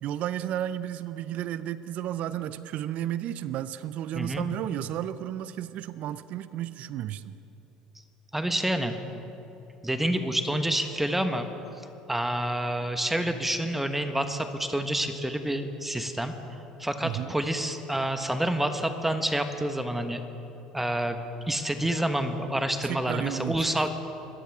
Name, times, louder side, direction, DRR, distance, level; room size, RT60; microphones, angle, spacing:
voice 1, 0.0-7.4 17.0-17.3 22.8-23.6, right 11 dB, 55° right, 15 dB, 0.5 m, -33 dB
voice 2, 4.1-4.4 8.3-9.0 9.8-11.5 12.1-16.3 16.8-20.2 20.7-23.9, right 1 dB, 5° right, 7 dB, 1.3 m, -28 dB
24.5 x 13.5 x 3.6 m, 2.9 s
hypercardioid pair, 70°, 3 cm